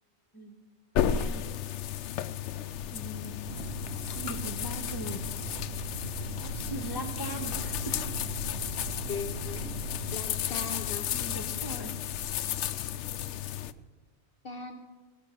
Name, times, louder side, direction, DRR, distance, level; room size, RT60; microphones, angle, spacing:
sound 1, 0.9-13.7, left 10 dB, 90° left, 0.9 m, -33 dB
voice 1, 1.0-1.4 2.9-3.3 4.1-5.2 6.7-7.9 11.1-11.9, right 2 dB, 20° left, 4 dB, 1.5 m, -40 dB
sound 2, 3.4-10.2, right 5 dB, 65° right, 0.8 m, -40 dB
voice 2, 9.1-9.7 10.1-11.1 14.4-14.8, left 4 dB, 55° left, 6 dB, 1.1 m, -39 dB
18.0 x 6.9 x 6.7 m, 1.4 s
omnidirectional pair, 1.1 m